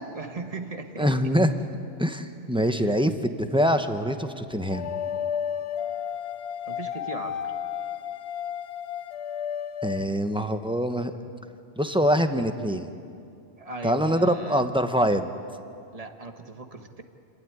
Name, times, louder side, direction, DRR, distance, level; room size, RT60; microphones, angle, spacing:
voice 1, 0.1-1.3 2.7-3.0 6.7-7.5 13.6-14.7 15.9-17.0, right 3 dB, 30° right, 6 dB, 1.4 m, -38 dB
voice 2, 1.0-1.5 2.0-4.9 9.8-11.1 11.8-12.9 13.8-15.3, equal, 5° right, 7 dB, 0.9 m, -24 dB
sound 1, 4.7-10.0, left 8 dB, 65° left, 0.9 m, -32 dB
30.0 x 12.5 x 9.7 m, 2.4 s
omnidirectional pair, 1.3 m